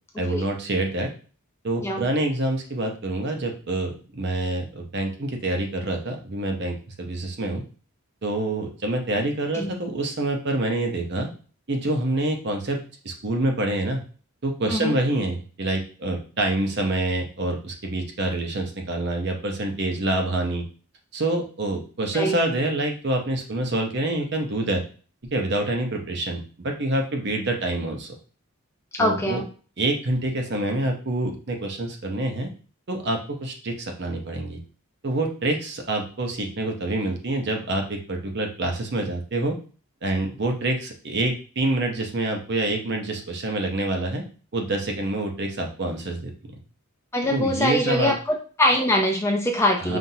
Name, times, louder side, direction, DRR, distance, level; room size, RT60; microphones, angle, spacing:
voice 1, 0.2-1.1 1.6-7.6 8.2-11.3 11.7-12.8 13.0-14.0 14.4-20.7 21.1-24.8 25.3-28.1 29.0-29.4 29.8-32.5 32.9-34.6 35.0-39.6 40.0-44.2 44.5-46.3 47.3-48.1 49.8-50.0, right 2 dB, 50° right, 3 dB, 0.7 m, -26 dB
voice 2, 28.9-29.4 47.1-50.0, left 1 dB, 10° left, 1 dB, 0.4 m, -23 dB
5.6 x 2.5 x 2.7 m, 0.39 s
head